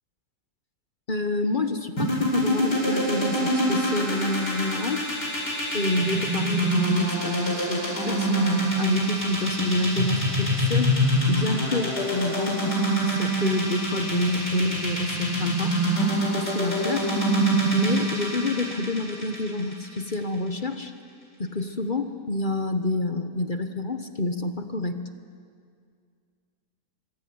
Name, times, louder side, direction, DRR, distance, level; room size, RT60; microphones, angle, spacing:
voice 1, 1.1-5.1 5.7-11.0 11.3-15.7 16.3-17.1 17.7-20.9 21.4-25.0, left 2 dB, 35° left, 8 dB, 1.2 m, -28 dB
sound 1, 2.0-20.1, equal, 80° left, 8.0 m, -25 dB
25.0 x 24.5 x 9.6 m, 2.2 s
omnidirectional pair, 1.8 m